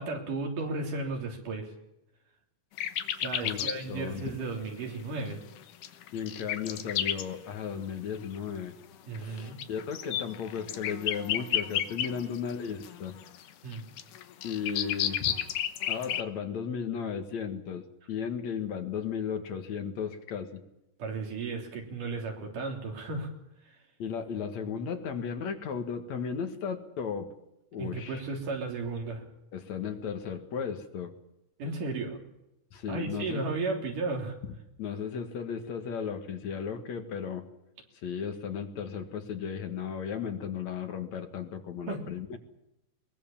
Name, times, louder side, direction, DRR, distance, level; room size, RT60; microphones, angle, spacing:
voice 1, 0.0-1.7 3.2-5.4 9.1-9.6 13.6-13.9 21.0-23.3 27.8-29.2 31.6-32.2 32.9-34.4 41.9-42.1, right 3 dB, 80° right, 2 dB, 5.1 m, -34 dB
sound 1, 2.8-3.8 4.2-4.3 5.6-7.3 8.2-8.4 9.2-12.5 12.8-16.2, left 11 dB, 80° left, 2.7 m, -32 dB
voice 2, 3.4-4.4 6.1-8.8 9.1-13.2 14.4-15.3 15.9-20.6 24.0-27.3 27.7-28.2 29.5-31.1 32.7-33.5 34.8-37.5 38.0-42.4, left 7 dB, 65° left, 7 dB, 2.9 m, -35 dB
22.0 x 20.5 x 7.3 m, 0.87 s
omnidirectional pair, 3.6 m